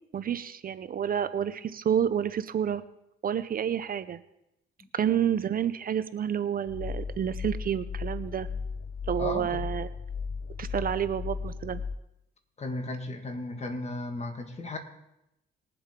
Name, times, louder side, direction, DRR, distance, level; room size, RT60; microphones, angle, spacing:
voice 1, 0.1-2.8 3.2-4.2 4.9-8.5 9.1-9.9 10.6-11.8, right 9 dB, 45° right, 13 dB, 0.6 m, -29 dB
sound 1, 6.7-12.0, left 5 dB, 65° left, 0.6 m, -36 dB
voice 2, 9.2-9.7 12.6-14.8, left 2 dB, 35° left, 6 dB, 1.8 m, -35 dB
20.5 x 7.8 x 3.7 m, 0.86 s
cardioid pair, 90°, 20 cm